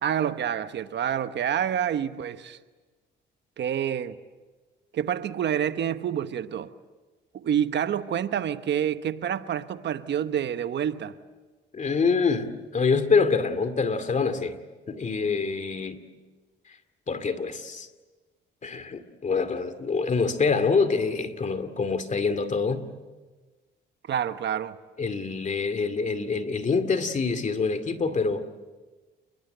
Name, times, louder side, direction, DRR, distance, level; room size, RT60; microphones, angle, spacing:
voice 1, 0.0-2.6 3.6-4.2 4.9-6.7 7.3-11.1 24.1-24.8, right 9 dB, 65° right, 1.1 m, -28 dB
voice 2, 11.7-14.6 14.9-16.0 17.1-17.9 18.6-22.9 25.0-28.4, left 4 dB, 40° left, 2.4 m, -25 dB
29.5 x 22.0 x 8.0 m
cardioid pair, 90°, 20 cm